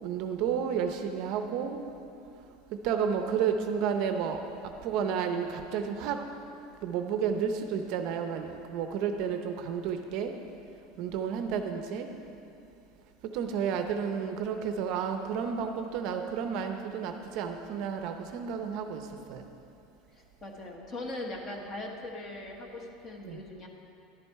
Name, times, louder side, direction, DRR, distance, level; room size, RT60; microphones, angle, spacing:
voice 1, 0.0-1.8 2.8-4.4 4.8-6.2 6.8-10.3 11.0-12.1 13.2-19.0 19.3-19.4 23.3-23.4, right 7 dB, 45° right, 6 dB, 0.6 m, -31 dB
voice 2, 20.1-23.7, left 2 dB, 20° left, 1 dB, 1.1 m, -40 dB
11.5 x 10.0 x 4.6 m, 2.7 s
supercardioid pair, 175°, 0 cm